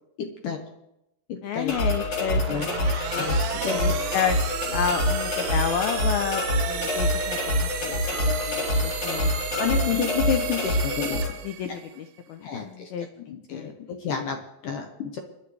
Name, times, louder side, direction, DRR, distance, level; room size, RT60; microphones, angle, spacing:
voice 1, 0.2-0.6 1.3-1.7 2.5-4.0 9.6-11.2 11.6-11.8 12.4-15.2, left 7 dB, 70° left, 3 dB, 2.1 m, -30 dB
voice 2, 1.4-3.4 3.7-4.4 4.7-8.0 8.3-9.6 11.4-11.8 12.3-13.7, left 8 dB, 85° left, 7 dB, 2.1 m, -31 dB
sound 1, 1.7-11.3, left 1 dB, 55° left, 5.5 m, -26 dB
sound 2, 2.3-12.0, right 10 dB, 80° right, 2.0 m, -34 dB
29.0 x 11.0 x 3.3 m, 0.87 s
omnidirectional pair, 5.2 m